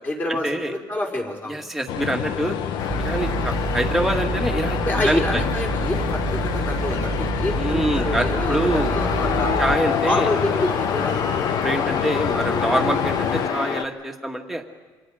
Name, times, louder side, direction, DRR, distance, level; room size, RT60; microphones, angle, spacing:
voice 1, 0.0-1.6 4.8-9.6 10.0-11.4, left 2 dB, 25° left, -1 dB, 4.8 m, -28 dB
voice 2, 1.5-2.6 3.0-4.8 5.0-5.4 7.6-8.9 9.6-10.3 11.6-14.6, right 1 dB, ahead, 2 dB, 2.1 m, -25 dB
sound 1, 1.9-13.5, left 9 dB, 75° left, 1.2 m, -28 dB
sound 2, 2.8-13.8, left 6 dB, 50° left, 1.5 m, -28 dB
sound 3, 2.9-9.8, right 5 dB, 25° right, 0.6 m, -29 dB
29.0 x 26.5 x 5.1 m, 1.3 s
cardioid pair, 135°, 8 cm